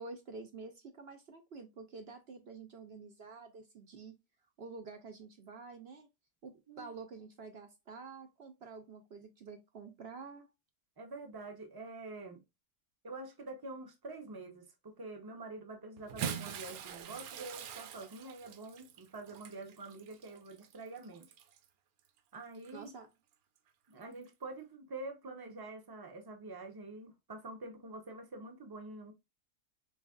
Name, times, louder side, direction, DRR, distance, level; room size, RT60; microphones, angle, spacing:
voice 1, 0.0-4.2 4.6-6.1 6.4-10.5 22.7-23.1, right 4 dB, 60° right, 0.7 m, -49 dB
voice 2, 11.0-12.4 13.0-21.3 22.3-22.9 23.9-29.1, right 2 dB, 25° right, 0.4 m, -46 dB
Bathtub (filling or washing) / Splash splatter, 16.0-21.6 22.5-22.7 24.2-24.3, right 8 dB, 85° right, 1.1 m, -44 dB
4.0 x 3.2 x 2.3 m
omnidirectional pair, 1.5 m